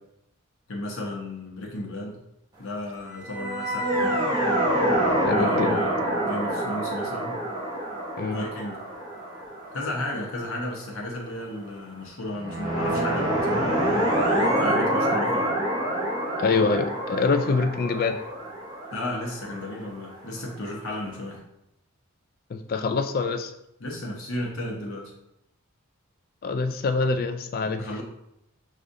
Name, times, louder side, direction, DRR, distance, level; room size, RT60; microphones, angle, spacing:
voice 1, 0.7-2.2 2.6-4.2 5.3-7.4 8.3-8.8 9.7-14.1 14.6-15.6 18.9-21.4 23.8-25.1 27.8-28.0, left 1 dB, 70° left, -1 dB, 0.9 m, -34 dB
sound 1, 3.2-10.5 12.4-20.2, right 1 dB, 20° right, 0.8 m, -26 dB
voice 2, 5.2-5.8 8.2-8.4 16.4-18.2 22.5-23.5 26.4-27.9, left 4 dB, 40° left, 7 dB, 0.3 m, -25 dB
6.3 x 2.4 x 2.6 m, 0.81 s
head